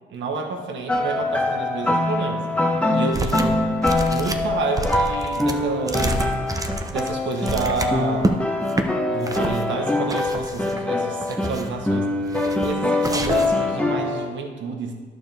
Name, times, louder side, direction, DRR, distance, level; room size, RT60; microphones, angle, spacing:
voice 1, 0.1-2.5 2.9-3.8 4.0-6.2 6.9-8.4 9.1-12.1 12.6-14.9, right 4 dB, 70° right, 3 dB, 1.3 m, -29 dB
sound 1, 0.9-14.3, left 2 dB, 5° left, 1.0 m, -24 dB
sound 2, 3.1-3.6 3.8-8.3 8.7-8.9 9.2-9.6 10.1-10.8 11.2-11.8 12.3-12.7 13.0-13.6, right 2 dB, 15° right, 0.7 m, -28 dB
11.0 x 6.6 x 3.5 m, 1.4 s
cardioid pair, 90°, 20 cm